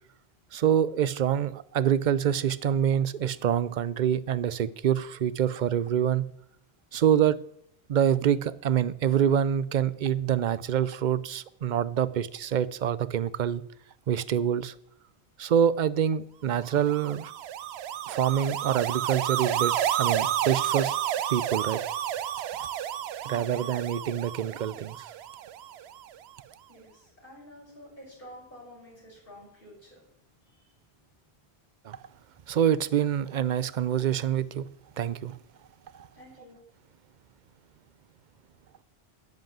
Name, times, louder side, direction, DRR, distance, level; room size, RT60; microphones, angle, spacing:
voice 1, 0.5-6.3 6.9-7.4 7.9-13.6 14.1-14.7 15.4-17.3 18.1-20.9 21.3-21.8 22.4-22.7 23.3-25.1 31.8-32.0 32.5-34.7 35.0-35.4 35.9-36.1, right 9 dB, 55° right, 0.6 m, -26 dB
sound 1, 16.7-26.0, right 11 dB, 80° right, 0.9 m, -31 dB
voice 2, 23.2-23.7 26.7-30.0 30.4-30.8 36.1-36.6, equal, 55° left, 5.9 m, -50 dB
10.5 x 8.0 x 7.5 m
omnidirectional pair, 1.1 m